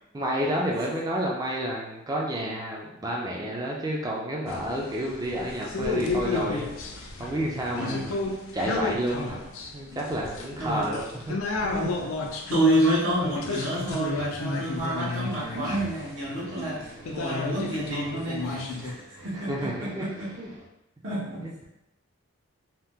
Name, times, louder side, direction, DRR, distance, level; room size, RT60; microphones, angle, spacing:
voice 1, 0.1-6.7 7.2-8.2 8.5-9.5 9.7-11.4 11.6-12.1 14.4-14.5 15.5-15.8 16.5-16.6 17.6-17.7 18.8-20.1 20.4-20.5 21.4-21.6, right 1 dB, 20° right, -3 dB, 0.4 m, -30 dB
sound 1, 4.4-18.9, left 3 dB, 85° left, 0.4 m, -32 dB
voice 2, 7.8-8.2 10.6-10.9 12.5-20.3 21.0-21.5, right 1 dB, 70° right, -7 dB, 1.0 m, -28 dB
sound 2, 14.3-20.7, right 1 dB, 40° right, 0.7 m, -48 dB
2.8 x 2.0 x 3.5 m, 0.88 s
head